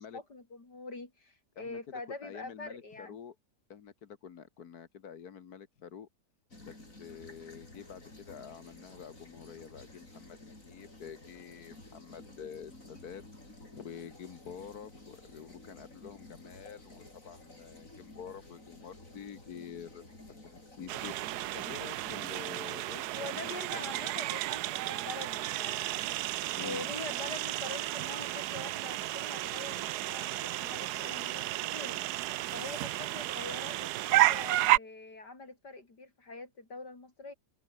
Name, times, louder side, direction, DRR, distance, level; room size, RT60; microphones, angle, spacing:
voice 1, 0.0-3.2 23.1-26.2 26.6-32.0 32.5-37.3, left 3 dB, 90° left, 5.7 m, -44 dB
voice 2, 1.6-3.4 3.7-6.1 6.6-13.2 13.7-20.1 20.4-21.1 21.5-24.0 26.6-26.9, left 7 dB, 70° left, 1.8 m, -48 dB
sound 1, 6.5-22.3, left 2 dB, 55° left, 7.2 m, -53 dB
sound 2, 20.9-34.8, right 16 dB, 80° right, 1.1 m, -32 dB
omnidirectional pair, 1.7 m